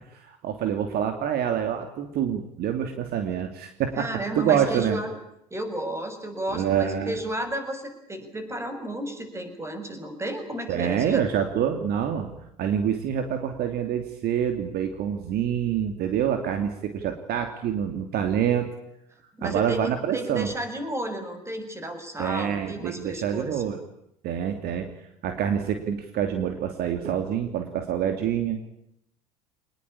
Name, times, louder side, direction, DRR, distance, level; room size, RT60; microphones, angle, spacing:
voice 1, 0.1-5.0 6.5-7.2 10.7-12.3 12.6-18.7 19.4-20.5 22.2-23.8 24.2-24.9 25.2-28.6, right 9 dB, 50° right, 6 dB, 3.0 m, -26 dB
voice 2, 3.9-5.1 5.5-11.2 19.4-23.6, right 1 dB, 15° right, 8 dB, 6.7 m, -32 dB
25.5 x 20.5 x 8.7 m, 0.77 s
hypercardioid pair, 75°, 20 cm